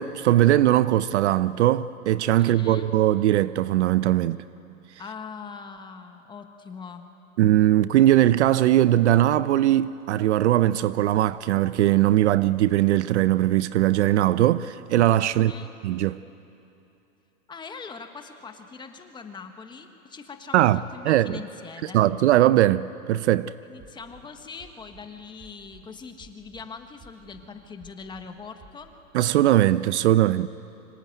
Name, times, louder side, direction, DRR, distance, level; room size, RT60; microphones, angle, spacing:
voice 1, 0.0-4.4 7.4-15.5 15.8-16.2 20.5-21.4 21.8-23.5 29.1-30.5, right 13 dB, 55° right, 0.6 m, -20 dB
voice 2, 2.4-2.9 5.0-7.1 15.3-15.7 17.5-22.0 23.7-28.9, left 5 dB, 10° left, 1.3 m, -42 dB
sound 1, 23.8-24.3 24.6-25.1 25.4-25.9 26.2-26.7 27.0-27.5 27.8-28.3 28.6-28.7, right 3 dB, 25° right, 5.3 m, -50 dB
25.5 x 25.0 x 9.3 m
hypercardioid pair, 150°, 42 cm